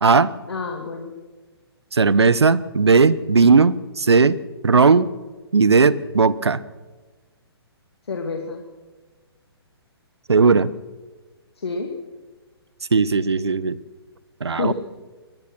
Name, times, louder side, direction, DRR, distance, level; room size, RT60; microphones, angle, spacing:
voice 1, 0.5-1.1 8.1-8.6 11.6-11.9 14.4-14.7, left 4 dB, 75° left, 3 dB, 2.6 m, -28 dB
voice 2, 1.9-4.4 4.6-5.1 5.5-6.6 10.3-10.7 12.9-13.8 14.4-14.7, right 4 dB, 80° right, 19 dB, 1.1 m, -16 dB
23.0 x 20.0 x 6.2 m, 1.3 s
figure-of-eight pair, 130°, 14 cm